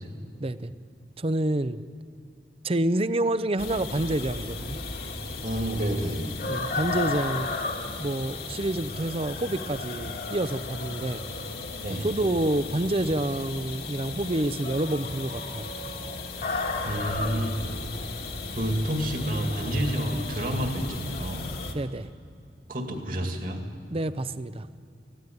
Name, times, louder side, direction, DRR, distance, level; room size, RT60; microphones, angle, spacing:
voice 1, 0.4-0.7 1.2-1.8 2.6-4.8 6.5-7.5 8.0-11.2 12.0-15.7 21.7-22.1 23.9-24.7, right 1 dB, 35° right, 13 dB, 0.6 m, -28 dB
sound 1, 3.6-21.7, left 3 dB, 60° left, 2.2 m, -34 dB
voice 2, 5.4-6.3 11.8-12.1 16.9-17.8 18.5-21.5 22.7-23.6, equal, 50° right, 3 dB, 2.4 m, -29 dB
19.5 x 15.5 x 9.3 m, 2.4 s
head